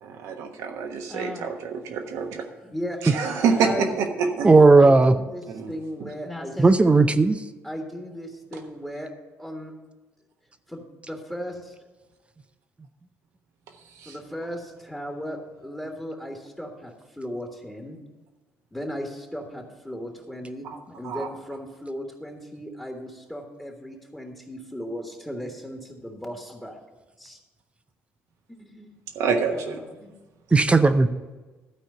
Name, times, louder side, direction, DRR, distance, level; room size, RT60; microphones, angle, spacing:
voice 1, 0.0-2.5 3.0-4.5 5.5-5.7 14.0-14.1 21.0-21.3 29.1-29.8, right 5 dB, 80° right, 4 dB, 1.3 m, -27 dB
voice 2, 1.1-1.5 2.5-6.7 7.6-9.1 9.4-9.7 10.7-11.7 14.0-18.0 18.7-26.8 27.2-27.4 28.5-28.9 29.5-30.1, equal, 5° left, 2 dB, 1.5 m, -36 dB
voice 3, 4.4-5.1 6.6-7.4 30.5-31.1, right 3 dB, 20° right, 10 dB, 0.6 m, -15 dB
12.5 x 4.4 x 7.7 m, 1.2 s
supercardioid pair, 75°, 5 cm